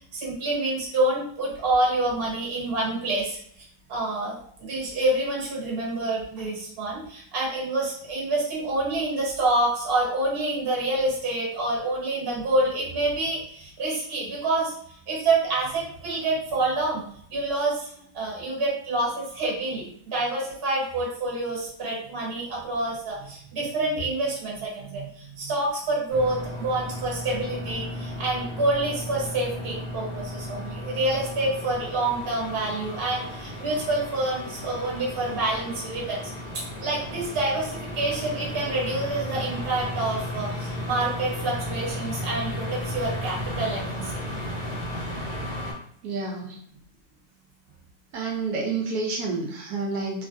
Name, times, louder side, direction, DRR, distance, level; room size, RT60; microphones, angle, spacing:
voice 1, 0.1-3.4 3.9-14.7 15.1-17.0 17.3-44.1, right 2 dB, 45° right, -4 dB, 1.1 m, -27 dB
sound 1, 26.1-45.7, left 1 dB, 85° left, 1.4 m, -34 dB
voice 2, 46.0-46.6 48.1-50.3, right 3 dB, 85° right, 0 dB, 1.2 m, -29 dB
3.1 x 2.4 x 2.5 m, 0.63 s
omnidirectional pair, 1.6 m